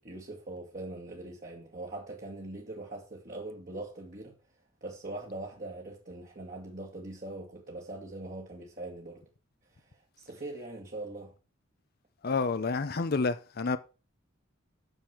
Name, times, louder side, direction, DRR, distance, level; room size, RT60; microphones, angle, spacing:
voice 1, 0.0-4.3 4.8-9.2 9.7-11.3, right 2 dB, 40° right, 2.1 m, -42 dB
voice 2, 12.2-13.8, left 4 dB, 50° left, 0.6 m, -29 dB
10.0 x 6.7 x 6.0 m
head